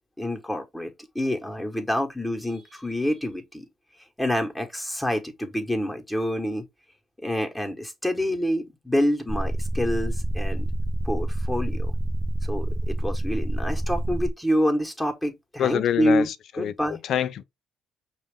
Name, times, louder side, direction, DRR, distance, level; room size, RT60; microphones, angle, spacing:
voice 1, 0.2-3.6 4.2-6.6 7.2-10.6 11.0-11.9 12.5-16.3 16.6-17.0, equal, 5° left, 1.3 m, -27 dB
sound 1, 9.3-14.3, right 1 dB, 10° right, 0.6 m, -27 dB
voice 2, 15.6-17.4, left 10 dB, 65° left, 0.5 m, -26 dB
5.7 x 2.5 x 3.5 m
supercardioid pair, 75°, 0 cm